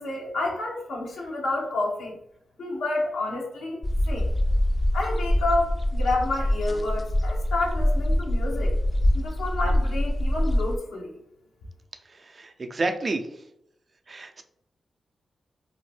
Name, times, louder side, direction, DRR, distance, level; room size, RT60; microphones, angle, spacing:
voice 1, 0.0-2.2 2.6-4.3 4.9-8.7 9.1-11.1, left 2 dB, 85° left, -2 dB, 0.7 m, -29 dB
sound 1, 3.8-10.8, left 1 dB, 40° left, 0.4 m, -24 dB
voice 2, 12.0-13.4 14.1-14.4, right 2 dB, 50° right, 6 dB, 0.4 m, -30 dB
2.6 x 2.0 x 3.2 m, 0.75 s
supercardioid pair, 40°, 0 cm